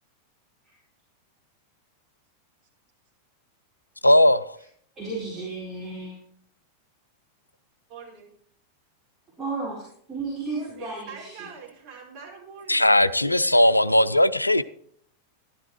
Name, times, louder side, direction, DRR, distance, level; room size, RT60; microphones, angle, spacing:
voice 1, 4.0-4.6 12.7-14.6, left 1 dB, 85° left, 0.4 m, -18 dB
voice 2, 5.0-6.2 9.4-9.8 10.1-11.4, right 3 dB, 15° right, 4.3 m, -33 dB
voice 3, 7.9-8.3 10.5-13.5, right 5 dB, 40° right, 5.0 m, -44 dB
13.5 x 11.5 x 3.1 m
figure-of-eight pair, 90°, 0 cm